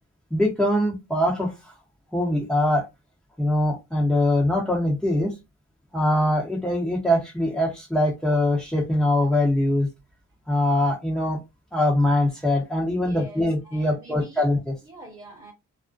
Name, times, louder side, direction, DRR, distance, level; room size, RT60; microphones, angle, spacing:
voice 1, 0.3-1.7 2.1-2.8 3.4-5.4 5.9-9.9 10.5-11.4 11.7-14.8, left 1 dB, ahead, 0.7 m, -22 dB
voice 2, 13.0-14.4 14.8-15.5, right 1 dB, 25° right, 1.0 m, -45 dB
2.5 x 2.1 x 2.3 m
cardioid pair, 90°, 30 cm